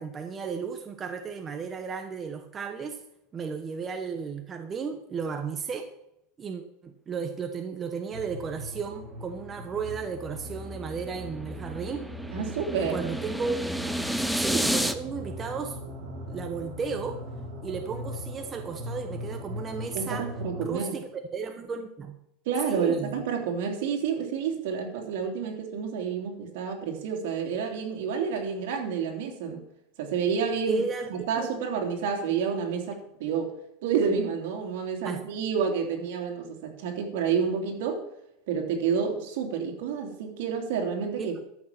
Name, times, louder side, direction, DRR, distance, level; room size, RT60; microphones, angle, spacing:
voice 1, 0.0-3.0 3.3-5.9 6.4-12.0 12.8-13.6 14.1-15.8 16.3-17.2 17.6-20.2 20.6-22.2 22.7-23.1 30.7-31.1 31.3-31.5 35.0-35.2 41.2-41.3, right 5 dB, 25° right, 6 dB, 1.0 m, -34 dB
sound 1, 8.1-20.7, equal, 40° right, 3.9 m, -39 dB
sound 2, 10.7-14.9, equal, ahead, 0.7 m, -30 dB
voice 2, 12.3-13.0 19.9-21.0 22.4-29.6 30.0-30.8 31.1-33.5 33.8-38.0 38.5-41.4, right 6 dB, 75° right, 2 dB, 3.1 m, -29 dB
13.5 x 6.5 x 6.0 m, 0.80 s
supercardioid pair, 135°, 0 cm